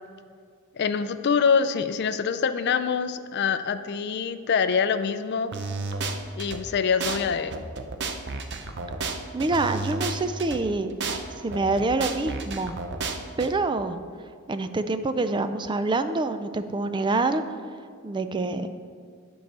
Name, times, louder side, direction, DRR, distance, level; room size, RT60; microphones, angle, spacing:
voice 1, 0.7-5.5 6.3-7.5, left 6 dB, 55° left, 12 dB, 0.4 m, -25 dB
sound 1, 5.5-6.6 7.0-7.2 7.5-10.6 11.0-11.2 11.5-13.5, right 4 dB, 55° right, 0.7 m, -31 dB
voice 2, 9.3-10.9 11.4-12.7 13.4-14.0 14.5-17.4 18.0-18.7, right 3 dB, 20° right, 10 dB, 0.4 m, -26 dB
10.5 x 4.7 x 6.7 m, 2.1 s
head